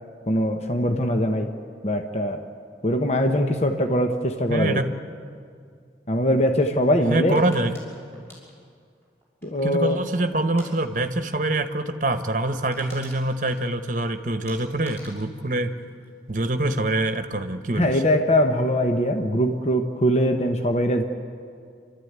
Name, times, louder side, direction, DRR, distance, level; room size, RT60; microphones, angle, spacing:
voice 1, 0.3-1.5 1.8-2.4 2.8-4.8 6.1-7.4 9.4-10.0 17.8-21.0, equal, 35° left, 5 dB, 1.1 m, -22 dB
voice 2, 4.5-4.9 7.1-7.7 9.6-15.7 16.3-18.0, right 2 dB, 45° right, 8 dB, 1.2 m, -25 dB
sound 1, 7.3-9.8 10.4-10.7 11.0-11.3 11.5-11.6 12.0-12.1 12.4-14.1 14.5-16.5 16.8-17.2, equal, 15° left, 5.8 m, -48 dB
28.0 x 13.0 x 9.5 m, 2.3 s
head